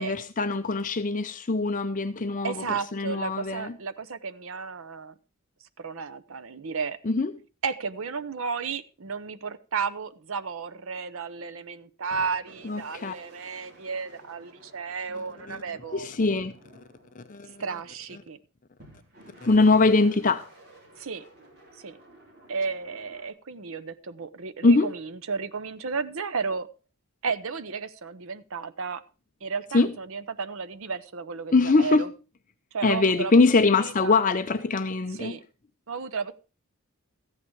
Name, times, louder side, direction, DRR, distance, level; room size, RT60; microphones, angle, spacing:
voice 1, 0.0-2.6 2.9-3.7 7.1-7.3 12.6-13.1 15.5-15.6 15.9-16.6 17.2-17.6 19.4-20.4 24.6-24.9 29.7-29.9 31.5-32.1 32.8-35.4, left 3 dB, 35° left, 0.6 m, -22 dB
voice 2, 2.4-5.1 5.8-7.0 7.6-16.1 17.6-18.4 21.0-21.2 21.8-22.0 22.5-26.7 27.2-29.0 29.4-32.1 32.7-33.3 33.8-34.2 35.1-35.4 35.9-36.3, right 5 dB, 65° right, 0.7 m, -33 dB
sound 1, 12.1-18.0 18.8-23.3, right 1 dB, 45° right, 3.4 m, -53 dB
13.5 x 8.7 x 4.6 m
head